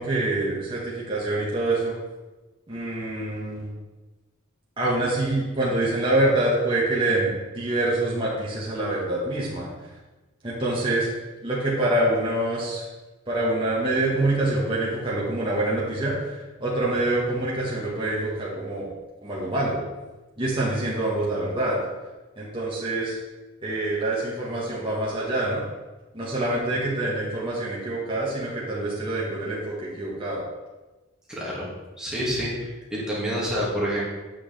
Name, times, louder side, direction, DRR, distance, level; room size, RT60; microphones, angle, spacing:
voice 1, 0.0-1.9 2.7-3.7 4.8-9.7 10.4-11.1 11.4-12.9 13.3-18.9 19.2-19.8 20.4-21.8 22.4-23.2 23.6-25.6 26.1-30.4, right 2 dB, 25° right, -7 dB, 1.6 m, -26 dB
voice 2, 31.3-31.7 32.0-34.0, equal, 5° right, -7 dB, 2.2 m, -28 dB
8.3 x 6.2 x 3.5 m, 1.2 s
head